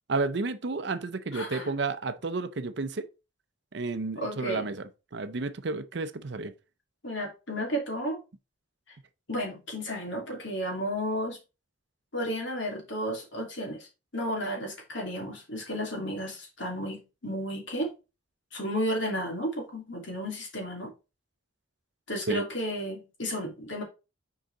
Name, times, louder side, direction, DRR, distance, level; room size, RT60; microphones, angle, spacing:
voice 1, 0.1-3.1 3.7-6.5 22.3-22.4, right 3 dB, 55° right, 0.6 m, -31 dB
voice 2, 1.3-1.7 4.2-4.7 7.0-8.2 9.3-11.4 12.1-13.9 14.1-17.9 18.5-20.9 22.1-23.8, equal, 65° left, 2.7 m, -33 dB
6.5 x 4.8 x 4.0 m
head